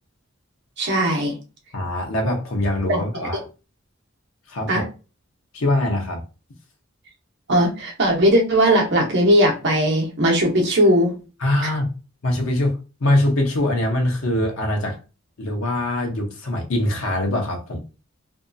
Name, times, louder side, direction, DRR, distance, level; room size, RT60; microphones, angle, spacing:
voice 1, 0.8-1.4 2.9-3.0 4.7-4.8 7.5-11.1 11.6-11.7, equal, 60° right, 0.8 m, -18 dB
voice 2, 1.7-3.4 4.5-4.9 5.5-6.2 11.4-11.9 12.2-15.0 15.4-17.8, left 1 dB, 90° left, 0.7 m, -23 dB
2.7 x 2.3 x 2.5 m
head